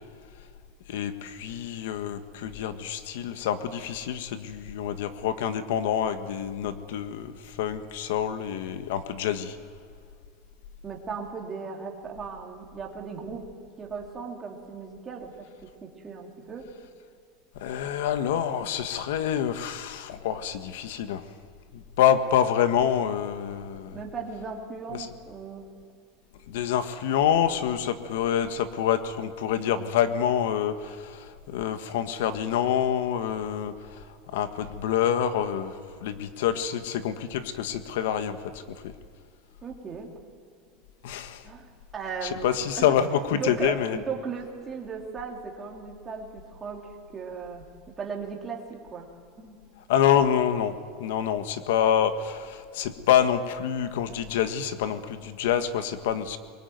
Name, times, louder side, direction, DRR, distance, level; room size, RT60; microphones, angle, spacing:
voice 1, 0.9-9.6 17.5-21.2 21.7-24.0 24.9-25.1 26.5-34.1 34.3-38.9 41.0-41.5 42.2-44.0 49.9-56.4, left 9 dB, 80° left, 10 dB, 1.6 m, -27 dB
voice 2, 10.8-13.5 13.8-15.5 15.8-16.7 23.9-25.7 39.6-40.1 41.4-42.9 43.3-47.7 48.0-49.1 49.4-49.6, right 5 dB, 15° right, 0 dB, 3.1 m, -37 dB
24.0 x 22.5 x 9.4 m, 2.2 s
supercardioid pair, 170°, 0 cm